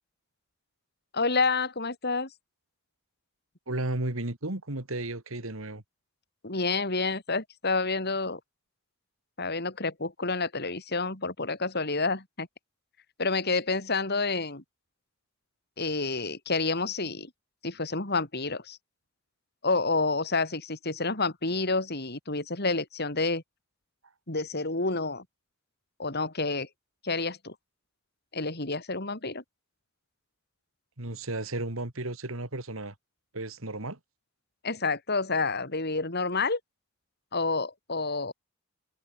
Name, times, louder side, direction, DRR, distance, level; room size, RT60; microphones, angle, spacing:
voice 1, 1.1-2.3 6.4-8.4 9.4-12.5 13.2-14.6 15.8-17.3 17.6-18.8 19.6-23.4 24.3-25.2 26.0-26.7 27.0-27.5 28.3-29.4 34.6-36.6 37.3-38.3, left 3 dB, 50° left, 4.4 m, -29 dB
voice 2, 3.7-5.8 31.0-32.9 33.3-34.0, right 2 dB, 80° right, 2.7 m, -33 dB
head